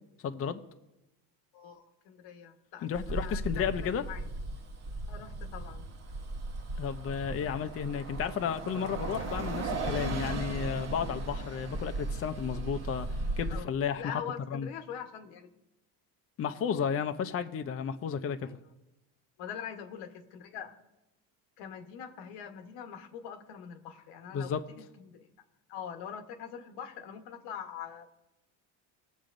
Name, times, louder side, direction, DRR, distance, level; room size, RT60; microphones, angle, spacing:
voice 1, 0.2-0.6 2.8-4.0 6.8-14.2 14.5-14.7 16.4-18.6 24.3-24.6, left 7 dB, 35° left, 8 dB, 0.6 m, -33 dB
voice 2, 1.5-4.2 5.1-5.9 13.5-13.7 14.0-15.5 18.4-18.5 19.4-20.8 21.6-25.3 25.7-28.1, left 8 dB, 90° left, 5 dB, 1.2 m, -43 dB
Bus, 2.9-13.6, right 2 dB, 40° right, 1.0 m, -36 dB
21.0 x 7.2 x 2.6 m, 0.94 s
cardioid pair, 115°, 40 cm